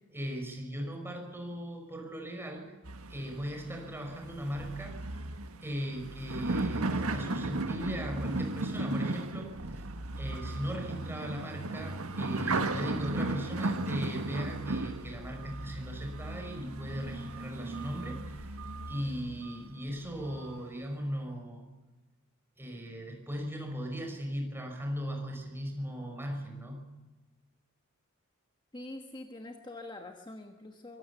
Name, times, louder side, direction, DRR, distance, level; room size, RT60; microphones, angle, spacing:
voice 1, 0.1-2.7 3.1-5.0 5.6-9.8 10.2-18.6 18.9-21.7 22.6-26.8, equal, 10° right, 2 dB, 5.2 m, -38 dB
sound 1, 2.8-19.5 20.1-20.6, right 2 dB, 90° right, 1.6 m, -35 dB
voice 2, 28.7-31.0, left 2 dB, 20° left, 4 dB, 1.3 m, -45 dB
24.0 x 17.0 x 7.0 m, 1.2 s
head